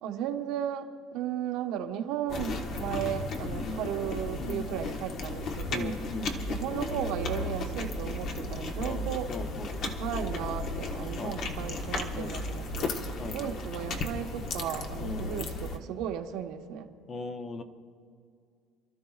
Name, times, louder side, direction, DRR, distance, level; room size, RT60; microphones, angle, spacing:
voice 1, 0.0-5.9 6.5-9.3 9.9-12.9 13.3-16.9, right 10 dB, 70° right, 4 dB, 1.2 m, -35 dB
sound 1, 2.3-15.8, left 2 dB, 50° left, 1.2 m, -35 dB
voice 2, 3.5-3.8 4.4-4.7 5.7-6.4 8.8-9.8 11.2-11.4 12.1-12.4 13.2-13.5 15.0-15.3 17.1-17.6, left 3 dB, 30° left, 7 dB, 0.8 m, -38 dB
29.0 x 13.0 x 2.4 m, 2.3 s
cardioid pair, 135°, 0 cm